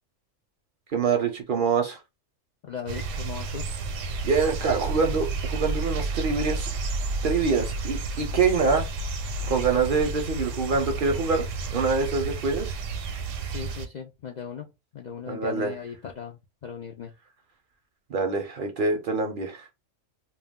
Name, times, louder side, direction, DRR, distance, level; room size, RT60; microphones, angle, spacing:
voice 1, 0.9-2.0 4.2-6.7 7.2-8.9 9.5-11.4 11.7-12.8 15.3-15.7 18.1-19.7, right 4 dB, 55° right, 0.6 m, -25 dB
voice 2, 2.6-3.7 13.4-17.1, left 7 dB, 65° left, 0.4 m, -38 dB
sound 1, 2.9-13.9, right 3 dB, 85° right, 0.9 m, -31 dB
2.3 x 2.2 x 3.5 m
omnidirectional pair, 1.3 m